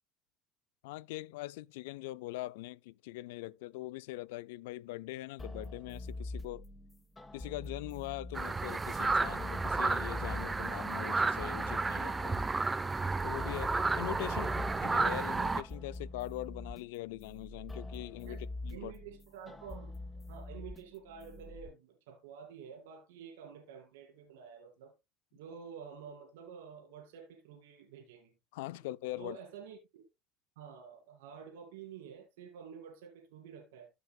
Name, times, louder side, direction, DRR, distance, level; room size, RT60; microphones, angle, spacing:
voice 1, 0.8-6.6 7.3-12.4 13.2-18.9 28.5-29.4, left 17 dB, 80° left, 0.4 m, -42 dB
sound 1, 5.4-21.7, left 2 dB, 20° left, 1.4 m, -45 dB
sound 2, 8.3-15.6, right 3 dB, 20° right, 0.7 m, -32 dB
voice 2, 14.3-14.7 18.3-18.4 18.7-19.9 20.3-24.9 25.3-28.3 29.2-30.0 30.6-33.9, right 7 dB, 85° right, 2.8 m, -49 dB
14.0 x 6.0 x 2.3 m
supercardioid pair, 90°, 0 cm